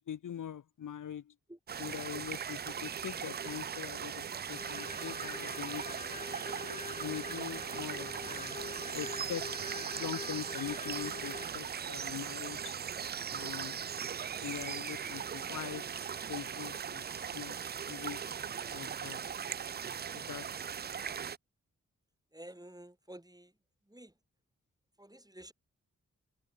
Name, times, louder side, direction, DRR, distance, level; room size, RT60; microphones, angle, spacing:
voice 1, 0.0-1.3 1.8-6.2 7.0-8.6 8.9-9.5 10.0-12.7 13.3-13.8 14.4-16.0 16.3-17.0 17.3-17.6 17.9-18.2 18.7-19.2 20.1-20.8, left 9 dB, 70° left, 1.0 m, -42 dB
sound 1, 1.7-21.4, right 7 dB, 30° right, 0.4 m, -39 dB
sound 2, 4.5-11.5, left 4 dB, 20° left, 0.6 m, -45 dB
voice 2, 22.3-23.5 23.9-24.1 25.0-25.5, right 1 dB, 10° right, 6.2 m, -51 dB
cardioid pair, 40°, 32 cm